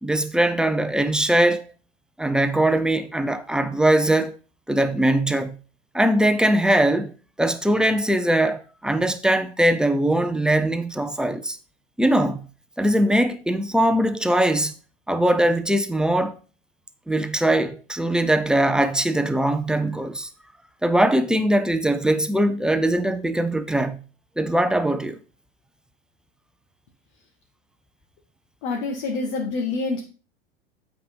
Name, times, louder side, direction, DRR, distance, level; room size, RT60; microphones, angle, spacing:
voice 1, 0.0-1.7 2.2-4.3 4.7-5.6 5.9-7.1 7.4-11.6 12.0-12.5 12.8-14.7 15.1-16.3 17.1-20.3 20.8-24.0 24.4-25.2, right 1 dB, ahead, 0.7 m, -21 dB
voice 2, 28.6-30.0, left 3 dB, 60° left, 2.0 m, -26 dB
8.5 x 4.9 x 5.4 m
hypercardioid pair, 90°, 32 cm